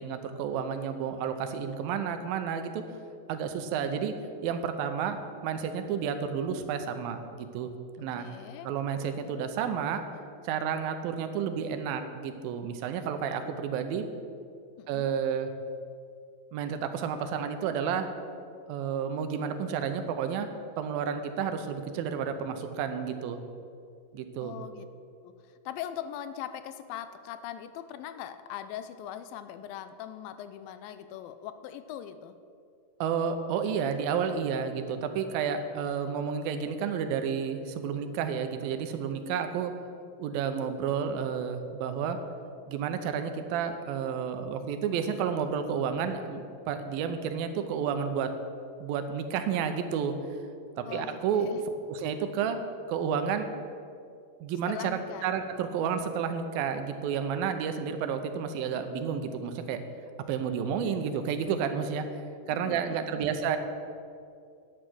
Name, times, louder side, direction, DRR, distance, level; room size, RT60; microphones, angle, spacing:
voice 1, 0.0-2.8 3.3-4.1 4.4-7.7 8.0-8.3 8.6-10.0 10.4-14.0 14.9-15.5 16.5-18.1 18.7-20.5 20.8-23.4 24.1-24.6 33.0-39.7 40.2-42.2 42.7-48.3 48.8-50.1 50.8-51.6 51.9-52.6 52.9-53.5 54.4-59.8 60.3-62.1 62.5-63.6, right 7 dB, 85° right, 8 dB, 2.6 m, -31 dB
voice 2, 8.1-8.7 14.8-15.1 24.4-24.9 25.2-25.3 25.7-32.4 50.9-51.6 54.7-55.3 62.5-63.0, left 10 dB, 85° left, 11 dB, 2.4 m, -41 dB
10.5 x 8.9 x 6.2 m, 2.4 s
omnidirectional pair, 4.1 m